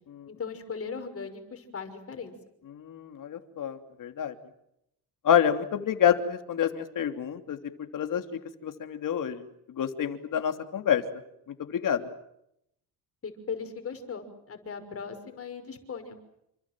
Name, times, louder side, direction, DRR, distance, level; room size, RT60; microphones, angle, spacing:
voice 1, 0.3-2.3 13.2-16.1, left 5 dB, 35° left, 7 dB, 6.0 m, -38 dB
voice 2, 2.7-4.3 5.2-7.6 7.9-11.0 11.5-12.0, left 9 dB, 55° left, 7 dB, 3.2 m, -28 dB
29.0 x 25.5 x 7.7 m, 0.78 s
cardioid pair, 110°, 39 cm